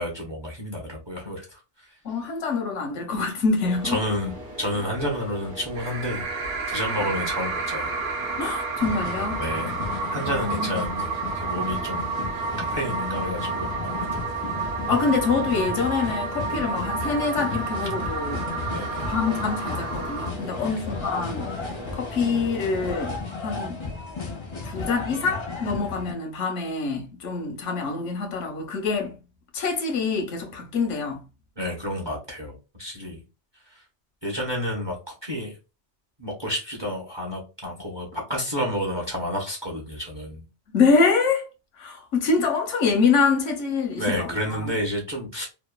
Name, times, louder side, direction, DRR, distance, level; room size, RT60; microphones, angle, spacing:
voice 1, 0.0-1.6 3.9-6.2 6.7-7.9 9.4-9.7 10.1-11.1 11.3-14.2 18.7-19.1 20.5-20.8 31.6-33.2 34.2-35.5 36.2-40.4 44.0-45.5, equal, 30° right, 0.5 m, -30 dB
voice 2, 2.0-4.0 7.0-7.1 8.4-9.4 10.3-11.0 14.9-18.5 19.1-23.8 24.6-29.1 29.5-31.2 40.7-41.5 41.8-44.7, left 4 dB, 85° left, 1.1 m, -25 dB
sound 1, 3.6-23.2, right 1 dB, 55° right, 1.0 m, -40 dB
sound 2, 5.8-20.3, right 4 dB, 85° right, 1.0 m, -31 dB
sound 3, 8.8-26.1, left 4 dB, 40° left, 0.4 m, -34 dB
2.8 x 2.1 x 2.2 m
omnidirectional pair, 1.2 m